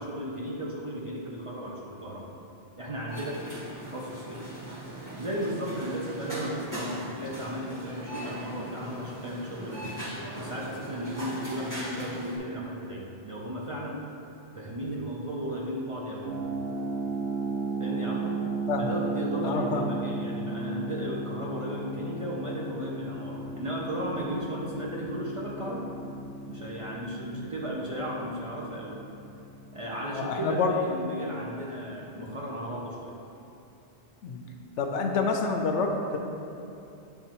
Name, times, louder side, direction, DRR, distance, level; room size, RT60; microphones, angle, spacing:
voice 1, 0.0-2.3 2.8-4.5 4.7-4.8 5.2-10.1 10.3-14.1 14.5-16.4 17.8-18.4 18.8-25.9 26.5-29.1 29.7-33.2, equal, 40° right, -4 dB, 0.5 m, -35 dB
sound 1, 3.1-12.4, right 1 dB, 15° right, 1.5 m, -39 dB
sound 2, 16.2-31.0, right 3 dB, 80° right, 1.2 m, -36 dB
voice 2, 19.4-19.8 27.3-27.5 30.1-30.7 34.2-34.4 34.8-36.2, left 4 dB, 85° left, 3 dB, 0.9 m, -28 dB
9.1 x 3.6 x 2.9 m, 2.8 s
omnidirectional pair, 1.2 m